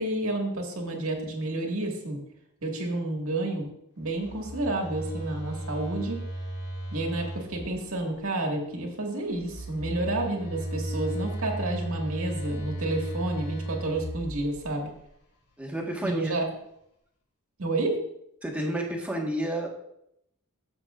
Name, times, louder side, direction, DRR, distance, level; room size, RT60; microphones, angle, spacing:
voice 1, 0.0-2.2 2.6-3.7 4.0-6.2 6.9-14.9 16.0-16.5 17.6-18.0, right 2 dB, 75° right, 1 dB, 1.9 m, -30 dB
Telephone, 4.1-8.1 9.3-15.0, right 1 dB, 80° left, 2.6 m, -36 dB
voice 2, 15.6-16.5 18.4-19.7, right 1 dB, 5° right, -1 dB, 1.4 m, -30 dB
14.0 x 7.1 x 2.5 m, 0.76 s
head